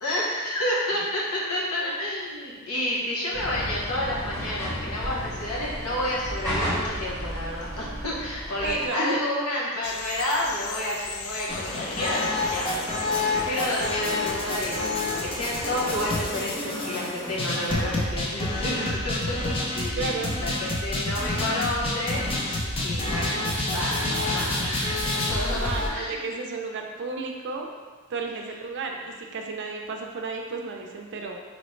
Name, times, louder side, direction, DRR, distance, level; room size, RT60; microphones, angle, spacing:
voice 1, 0.0-22.2 22.8-26.2, left 1 dB, 90° left, -5 dB, 1.0 m, -30 dB
sound 1, 3.3-8.9, equal, 10° left, 1.0 m, -33 dB
voice 2, 8.6-9.2 19.9-20.3 25.6-27.7 28.1-31.4, right 3 dB, 55° right, 2 dB, 0.5 m, -32 dB
sound 2, 9.8-16.7, left 5 dB, 70° left, 0.4 m, -39 dB
sound 3, 11.5-25.9, left 2 dB, 25° left, 0.6 m, -28 dB
4.1 x 3.1 x 3.2 m, 1.4 s
head